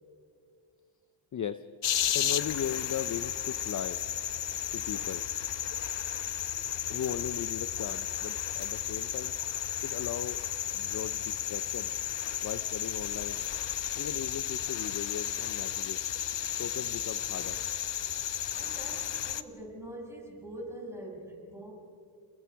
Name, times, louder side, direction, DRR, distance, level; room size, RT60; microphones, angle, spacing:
voice 1, 1.3-1.6 2.1-4.0 4.7-5.2 6.9-9.3 9.8-10.4 10.7-11.9 12.4-13.4 14.0-16.0 16.6-17.6, left 8 dB, 35° left, 12 dB, 0.6 m, -37 dB
sound 1, 1.8-19.4, left 11 dB, 60° left, 1.0 m, -33 dB
voice 2, 18.4-21.7, right 1 dB, 5° right, -1 dB, 5.8 m, -44 dB
29.5 x 21.5 x 4.6 m, 2.4 s
cardioid pair, 105°, 50 cm